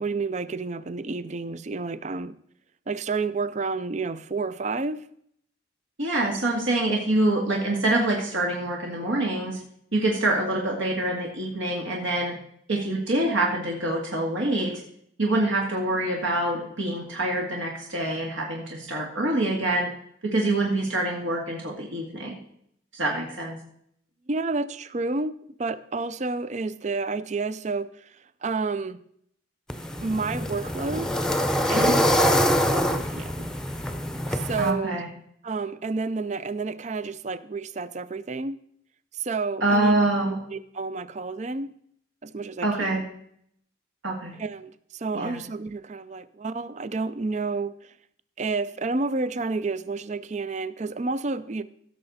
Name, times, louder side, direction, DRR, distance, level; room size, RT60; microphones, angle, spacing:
voice 1, 0.0-2.3 2.9-5.0 24.3-25.3 25.6-28.1 28.4-29.0 30.0-31.1 31.7-33.5 34.3-35.0 35.4-38.6 39.1-40.0 40.5-41.7 42.2-42.9 44.4-47.9 48.4-51.6, right 3 dB, 35° right, 15 dB, 0.5 m, -30 dB
voice 2, 6.0-9.6 9.9-12.3 12.7-14.7 15.2-19.9 20.2-22.4 22.9-23.6 31.7-31.9 34.6-35.1 39.6-40.4 42.6-43.0 44.0-44.3 45.1-45.4, right 2 dB, 75° right, -1 dB, 2.1 m, -25 dB
sound 1, 29.7-34.7, equal, 5° left, 0.7 m, -24 dB
16.5 x 6.6 x 4.2 m, 0.68 s
head